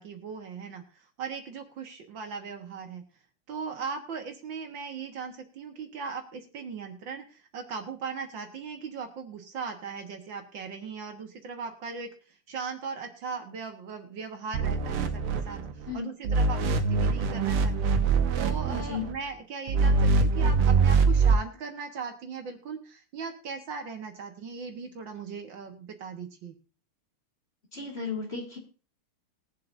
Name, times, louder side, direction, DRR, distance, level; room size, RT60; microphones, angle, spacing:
voice 1, 0.0-3.0 3.5-26.6, right 5 dB, 65° right, 4 dB, 2.0 m, -38 dB
sound 1, 14.5-15.9 16.2-19.1 19.7-21.4, right 4 dB, 85° right, 1.9 m, -24 dB
voice 2, 18.7-19.1 27.7-28.6, left 5 dB, 30° left, -1 dB, 2.5 m, -34 dB
21.5 x 7.7 x 2.7 m, 0.35 s
omnidirectional pair, 2.3 m